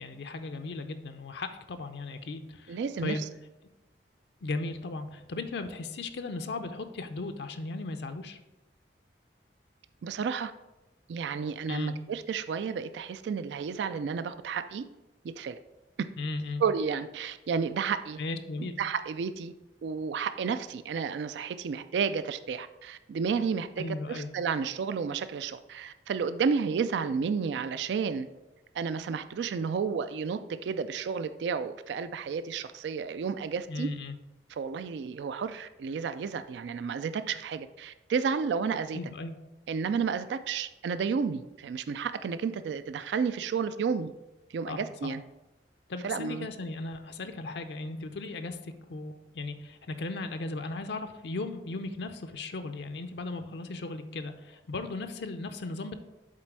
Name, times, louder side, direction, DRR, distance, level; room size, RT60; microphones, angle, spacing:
voice 1, 0.0-3.2 4.4-8.4 11.7-12.0 16.2-16.6 18.2-18.8 23.8-24.3 33.7-34.2 38.9-39.3 44.7-45.1 45.9-55.9, left 3 dB, 70° left, 8 dB, 0.5 m, -36 dB
voice 2, 2.7-3.3 10.0-10.5 11.1-14.8 15.4-15.6 16.6-18.2 18.6-19.5 19.8-28.3 28.7-33.9 34.5-39.0 39.7-44.1 44.5-45.2 46.0-46.5, right 6 dB, 75° right, 12 dB, 0.3 m, -31 dB
7.5 x 4.1 x 4.6 m, 1.0 s
head